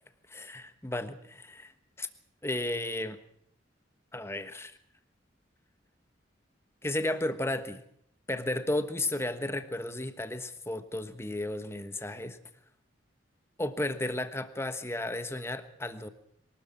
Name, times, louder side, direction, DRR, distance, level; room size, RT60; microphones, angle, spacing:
voice 1, 0.3-1.7 2.0-2.1 2.4-3.2 4.1-4.8 6.8-7.8 8.3-12.4 13.6-16.1, left 1 dB, 15° left, 10 dB, 1.3 m, -33 dB
23.5 x 13.0 x 8.9 m, 0.70 s
head